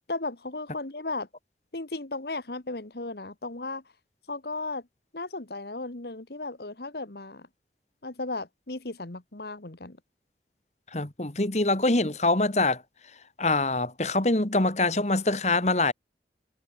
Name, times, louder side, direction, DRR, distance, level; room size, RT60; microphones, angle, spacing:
voice 1, 0.1-1.3 1.7-3.8 4.3-4.8 5.1-7.5 8.0-10.0, left 2 dB, 65° left, 1.6 m, -35 dB
voice 2, 10.9-12.8 13.4-15.9, left 2 dB, 40° left, 1.8 m, -24 dB
head